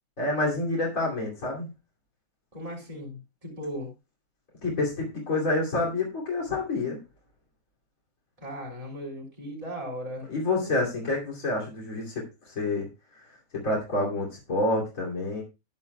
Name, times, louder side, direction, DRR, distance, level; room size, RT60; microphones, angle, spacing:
voice 1, 0.2-1.7 4.6-7.0 10.3-12.9 13.6-15.4, left 2 dB, 65° left, -3 dB, 3.2 m, -28 dB
voice 2, 2.5-3.9 8.4-10.3 10.5-10.8, equal, 25° right, -3 dB, 3.6 m, -37 dB
14.5 x 9.5 x 2.2 m, 0.27 s
omnidirectional pair, 1.6 m